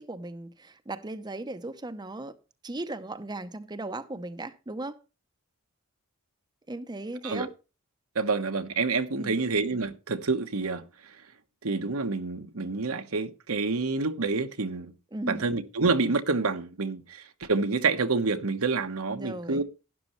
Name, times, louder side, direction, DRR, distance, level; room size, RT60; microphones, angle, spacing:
voice 1, 0.0-2.4 2.6-5.0 6.7-7.5 9.2-9.4 15.1-15.5 19.1-19.6, right 2 dB, 20° right, 0.7 m, -37 dB
voice 2, 8.1-10.8 11.6-14.9 15.3-19.6, right 4 dB, 75° right, 1.1 m, -28 dB
12.0 x 11.0 x 3.1 m
head